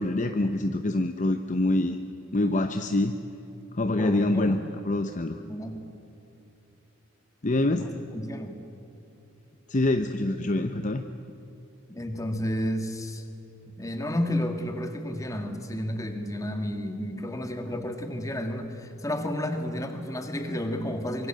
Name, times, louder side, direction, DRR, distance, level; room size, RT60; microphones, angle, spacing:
voice 1, 0.0-2.0 2.3-3.2 3.8-5.4 7.4-7.9 9.7-11.0, left 2 dB, 35° left, 7 dB, 0.8 m, -25 dB
voice 2, 3.9-4.6 5.5-5.8 7.7-8.6 11.9-13.2 13.8-21.3, left 1 dB, 15° left, 5 dB, 2.1 m, -31 dB
25.5 x 23.5 x 7.7 m, 2.8 s
head